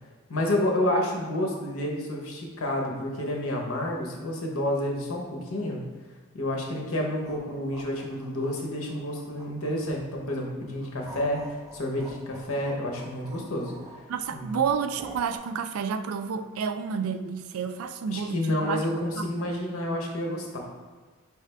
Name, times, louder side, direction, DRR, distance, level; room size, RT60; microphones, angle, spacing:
voice 1, 0.3-5.8 6.3-13.7 14.3-14.6 18.1-20.7, left 1 dB, 80° left, 0 dB, 0.9 m, -29 dB
sound 1, 7.1-10.1 10.5-15.4, right 1 dB, 15° right, 0.4 m, -47 dB
voice 2, 14.1-18.8 19.2-19.3, right 6 dB, 80° right, 9 dB, 0.3 m, -30 dB
4.7 x 3.3 x 3.3 m, 1.5 s
head